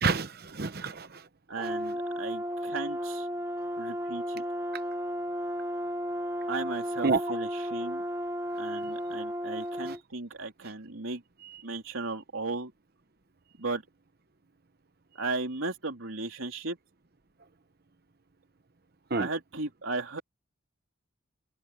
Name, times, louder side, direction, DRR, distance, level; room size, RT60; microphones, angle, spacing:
voice 1, 0.0-1.3 7.0-7.4 8.7-8.8 11.4-11.6 19.1-19.3, right 4 dB, 50° right, 0.9 m, -29 dB
voice 2, 1.5-3.3 3.8-4.4 6.5-8.0 8.5-11.2 11.6-12.7 13.6-13.8 15.2-16.8 19.1-20.2, right 3 dB, 80° right, 3.0 m, -36 dB
Brass instrument, 1.6-10.0, equal, 15° right, 1.2 m, -34 dB
head